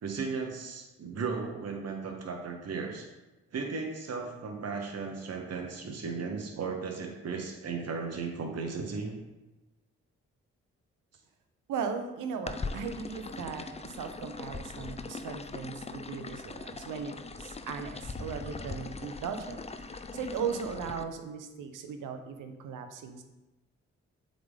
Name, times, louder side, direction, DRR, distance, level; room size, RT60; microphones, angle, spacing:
voice 1, 0.0-3.1 3.5-9.2, right 4 dB, 50° right, 2 dB, 1.2 m, -36 dB
voice 2, 11.7-17.1 17.4-23.2, right 6 dB, 75° right, 7 dB, 0.8 m, -37 dB
sound 1, 12.5-21.0, left 4 dB, 20° left, 0.5 m, -41 dB
7.8 x 3.9 x 3.6 m, 1.0 s
hypercardioid pair, 45°, 32 cm